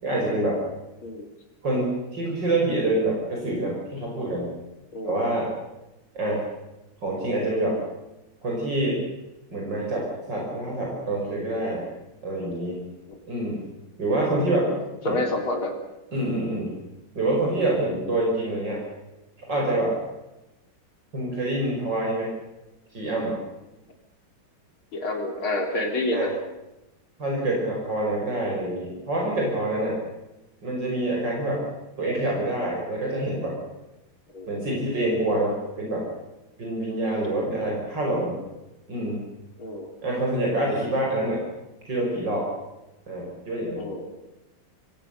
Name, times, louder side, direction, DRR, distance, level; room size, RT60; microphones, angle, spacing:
voice 1, 0.0-0.6 1.6-4.5 5.0-5.5 6.1-6.4 7.0-7.8 8.4-9.0 9.5-11.9 12.2-12.8 13.3-13.7 14.0-14.7 15.0-15.2 16.1-16.7 17.1-18.8 19.5-20.0 21.1-22.3 22.9-23.4 26.1-26.3 27.2-30.0 30.6-31.6 32.0-33.5 34.5-36.0 36.6-38.4 38.9-39.2 40.0-41.4 41.9-42.5 43.1-43.9, right 1 dB, 60° right, -2 dB, 6.2 m, -26 dB
voice 2, 4.9-5.2 13.1-13.2 14.5-15.7 16.5-16.6 24.9-26.3 34.3-34.5 37.2-37.6 39.6-39.9 43.8-44.1, left 1 dB, 85° left, 3 dB, 4.1 m, -29 dB
26.5 x 21.0 x 6.7 m, 0.97 s
omnidirectional pair, 2.2 m